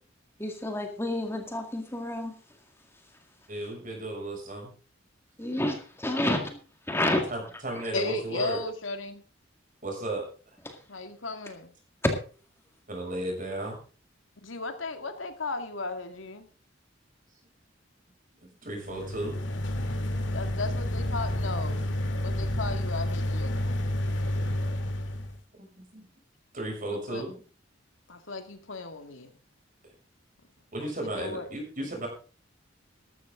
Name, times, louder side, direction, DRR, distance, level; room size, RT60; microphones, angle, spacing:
voice 1, 0.4-2.4 5.4-6.6 6.9-7.3 7.8-7.9 10.7-10.8, left 1 dB, 15° left, 2.0 m, -29 dB
voice 2, 3.5-4.7 7.3-8.6 9.8-10.3 12.9-13.8 18.4-19.4 25.6-25.7 26.5-27.4 30.7-32.1, right 1 dB, 45° right, 6.4 m, -34 dB
voice 3, 7.9-9.2 10.9-11.7 14.4-16.5 20.3-21.9 22.2-23.6 26.9-27.3 28.1-29.4 30.8-31.5, left 3 dB, 85° left, 2.1 m, -36 dB
sound 1, 18.8-25.4, left 1 dB, 70° left, 1.9 m, -30 dB
14.0 x 12.5 x 3.8 m
head